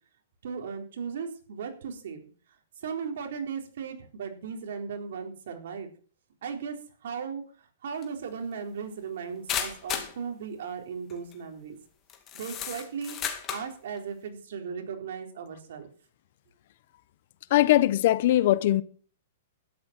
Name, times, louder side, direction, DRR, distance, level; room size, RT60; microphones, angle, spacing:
voice 1, 0.4-2.2 2.8-5.9 6.4-7.4 7.8-11.8 12.3-13.2 13.5-15.9, right 6 dB, 65° right, 4.0 m, -36 dB
sound 1, 8.0-8.1 9.5-10.2 11.1-11.3 12.1-13.7, left 9 dB, 20° left, 2.2 m, -33 dB
voice 2, 17.5-18.8, left 14 dB, 45° left, 0.8 m, -21 dB
12.5 x 10.5 x 6.0 m
hypercardioid pair, 165°, 0 cm